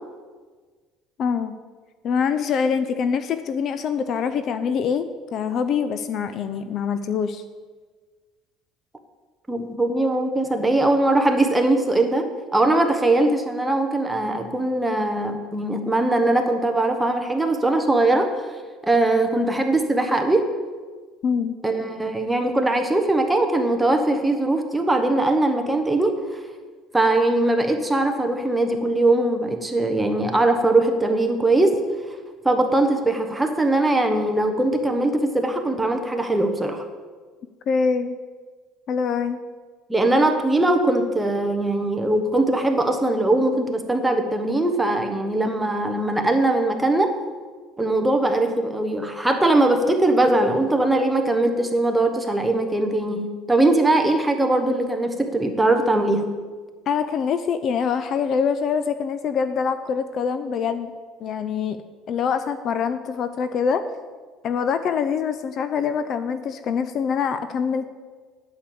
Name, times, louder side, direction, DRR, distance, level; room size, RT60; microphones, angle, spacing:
voice 1, 1.2-1.5 2.0-7.4 21.2-21.6 37.7-38.2 38.9-39.4 56.9-60.9 61.2-61.8 62.1-63.8 64.4-67.9, left 6 dB, 45° left, 11 dB, 0.6 m, -24 dB
voice 2, 9.5-18.3 18.8-20.5 21.6-26.2 26.9-31.8 32.4-36.8 39.9-47.1 47.8-56.2, right 2 dB, 10° right, 5 dB, 1.2 m, -21 dB
8.8 x 6.7 x 8.6 m, 1.5 s
cardioid pair, 125°, 0 cm